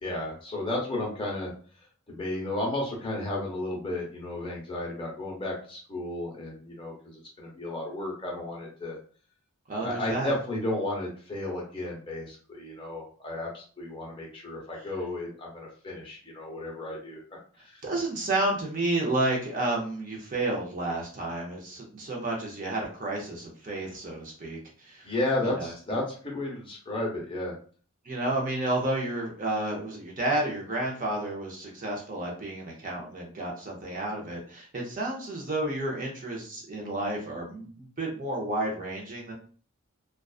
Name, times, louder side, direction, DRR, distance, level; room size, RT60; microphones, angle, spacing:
voice 1, 0.0-1.5 2.1-9.0 9.8-17.2 17.6-17.8 25.0-27.6, left 1 dB, 25° left, -2 dB, 0.7 m, -33 dB
voice 2, 9.7-10.3 17.8-25.0 25.6-25.7 28.1-39.3, right 2 dB, 35° right, -2 dB, 0.6 m, -31 dB
2.4 x 2.3 x 2.3 m, 0.42 s
head